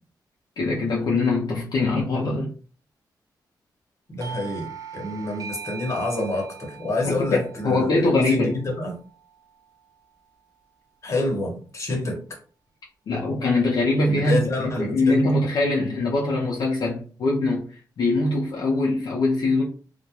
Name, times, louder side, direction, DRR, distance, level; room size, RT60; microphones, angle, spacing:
voice 1, 0.6-2.5 7.0-8.6 13.1-19.6, left 2 dB, 60° left, 0.5 m, -23 dB
voice 2, 4.1-8.9 11.0-12.2 14.1-15.2, left 2 dB, 40° left, 0.9 m, -27 dB
Doorbell, 4.2-9.5, right 7 dB, 50° right, 0.4 m, -41 dB
2.2 x 2.1 x 2.8 m
wide cardioid pair, 120°, 8 cm